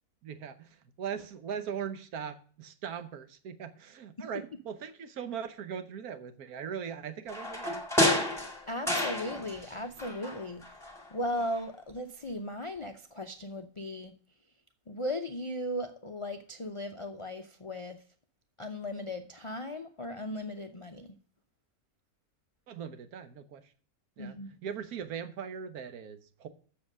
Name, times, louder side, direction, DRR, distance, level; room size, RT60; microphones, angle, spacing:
voice 1, 0.2-0.7 1.0-7.8 22.7-23.6 24.2-26.5, right 7 dB, 80° right, 1.4 m, -40 dB
sound 1, 7.3-9.7 10.0-11.1 11.4-11.5, left 1 dB, ahead, 2.0 m, -30 dB
voice 2, 8.7-10.6 11.1-14.1 14.9-18.0 18.6-21.2 24.2-24.6, left 1 dB, 50° left, 0.3 m, -37 dB
7.6 x 6.8 x 6.1 m
omnidirectional pair, 1.6 m